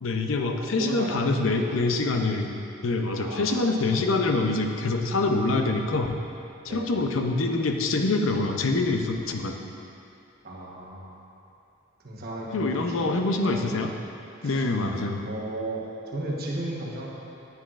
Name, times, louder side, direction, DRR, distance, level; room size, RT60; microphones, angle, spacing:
voice 1, 0.0-2.5 2.8-6.2 6.6-9.5 12.5-13.9 14.4-15.3, left 3 dB, 75° left, 4 dB, 0.7 m, -25 dB
voice 2, 0.6-1.7 3.2-4.2 6.6-6.9 10.4-11.2 12.0-13.8 14.4-14.6 15.2-17.1, right 1 dB, 50° right, -3 dB, 1.2 m, -35 dB
10.0 x 9.6 x 2.5 m, 2.7 s
head